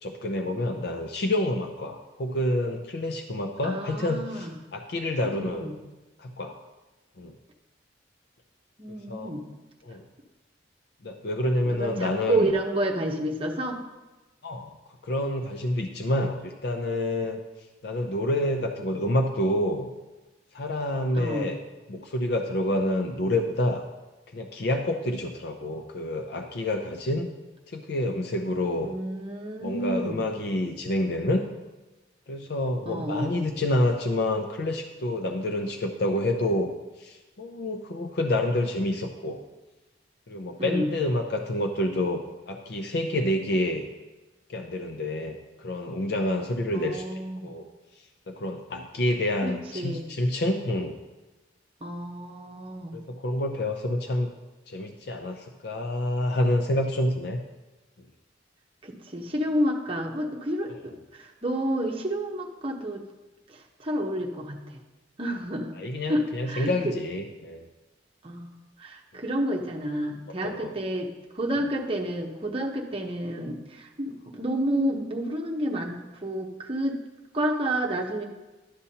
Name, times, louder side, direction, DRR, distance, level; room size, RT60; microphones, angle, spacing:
voice 1, 0.0-5.8 6.2-6.6 7.2-7.4 9.1-9.3 9.8-10.0 11.0-12.5 14.4-14.7 15.0-17.4 17.8-19.9 20.5-21.6 21.9-23.8 24.3-27.3 27.7-28.9 29.6-31.4 32.3-36.7 37.0-39.4 40.3-42.2 42.5-43.9 44.5-47.7 48.3-51.0 52.9-54.3 54.7-57.4 65.8-67.7 70.4-70.7, left 1 dB, 55° left, 4 dB, 0.5 m, -28 dB
voice 2, 3.6-4.5 5.2-5.8 8.8-9.6 11.7-13.8 21.2-21.6 28.8-30.2 32.9-33.6 40.6-40.9 46.7-47.5 49.4-50.1 51.8-53.0 58.8-63.0 63.5-64.6 65.2-65.8 66.1-66.9 68.2-68.5 68.8-77.0 77.3-78.2, right 1 dB, 30° right, 0 dB, 0.8 m, -30 dB
11.5 x 6.9 x 2.8 m, 1.1 s
head